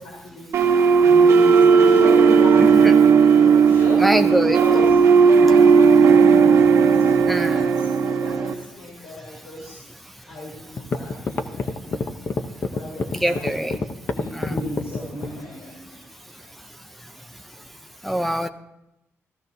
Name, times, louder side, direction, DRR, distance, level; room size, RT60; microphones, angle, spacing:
voice 1, 0.0-2.7 3.3-6.4 6.9-9.8 10.3-12.2 12.7-13.8 14.1-16.1 16.4-16.6, left 1 dB, 75° left, -4 dB, 3.9 m, -35 dB
sound 1, 0.5-8.5, right 6 dB, 80° right, 1.2 m, -15 dB
voice 2, 2.6-2.9 4.0-4.6 7.3-7.6 13.1-13.8 14.3-14.5 18.0-18.5, equal, 5° left, 9 dB, 0.4 m, -23 dB
sound 2, 10.3-10.4 10.8-15.4, left 4 dB, 40° left, 0.7 m, -26 dB
16.0 x 14.5 x 2.7 m, 0.85 s
wide cardioid pair, 165°, 5 cm